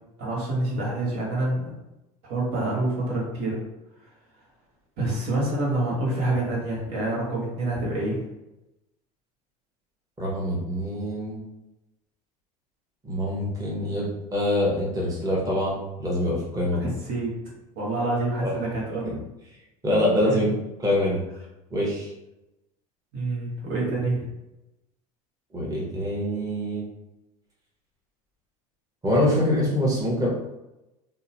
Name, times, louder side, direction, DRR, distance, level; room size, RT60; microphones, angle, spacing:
voice 1, 0.2-1.7 2.2-3.6 5.0-8.2 16.8-17.3 17.8-19.2 20.3-20.5 23.1-24.3, right 2 dB, 60° right, -4 dB, 1.1 m, -27 dB
voice 2, 10.2-11.4 13.0-16.9 18.4-18.5 19.8-20.5 20.8-21.2 21.7-22.1 25.5-26.8 29.0-30.3, left 1 dB, 20° right, -4 dB, 0.9 m, -25 dB
2.8 x 2.1 x 2.7 m, 0.94 s
hypercardioid pair, 85°, 19 cm